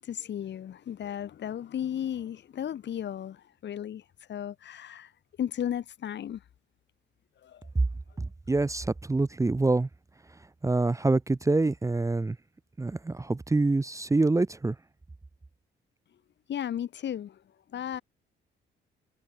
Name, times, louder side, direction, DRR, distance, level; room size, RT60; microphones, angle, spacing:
voice 1, 0.0-5.1 5.4-6.4 7.4-7.7 8.1-8.2 16.5-18.0, left 10 dB, 65° left, 3.5 m, -35 dB
voice 2, 8.2-9.9 10.6-12.4 12.8-14.8, right 2 dB, 15° right, 0.9 m, -26 dB
open air
cardioid pair, 90°, 20 cm